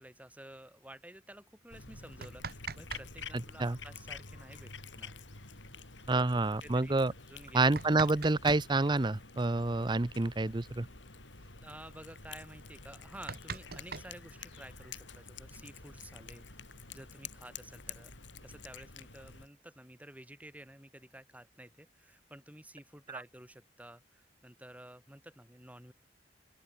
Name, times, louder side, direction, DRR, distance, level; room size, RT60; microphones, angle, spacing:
voice 1, 0.0-4.7 5.0-5.1 6.1-6.2 6.6-7.0 7.3-7.7 11.6-16.4 16.9-18.1 18.4-25.9, right 1 dB, 10° right, 7.6 m, -52 dB
Cat, 1.7-19.5, left 5 dB, 85° left, 4.8 m, -49 dB
sound 1, 2.0-3.1 3.3-3.4 5.2-5.3 5.6-5.7 6.4-6.5 7.3-8.7 10.2-10.3 10.6-10.8 11.1-11.5 12.0-12.1 12.5-12.6 12.9-14.8 15.7-16.6, right 4 dB, 55° right, 2.5 m, -43 dB
voice 2, 3.3-3.8 6.1-7.1 7.5-10.9, right 2 dB, 25° right, 0.7 m, -28 dB
open air
head